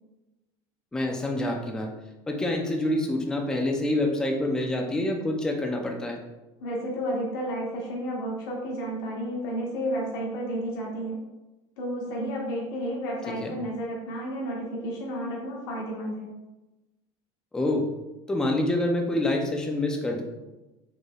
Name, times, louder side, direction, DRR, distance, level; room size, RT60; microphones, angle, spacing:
voice 1, 0.9-1.9 2.3-6.2 13.4-13.5 17.5-17.8 18.3-20.2, left 1 dB, 5° left, 1 dB, 0.4 m, -26 dB
voice 2, 6.6-11.2 11.8-16.3, equal, 85° left, -3 dB, 1.3 m, -31 dB
6.5 x 3.2 x 2.3 m, 1.0 s
cardioid pair, 165°, 12 cm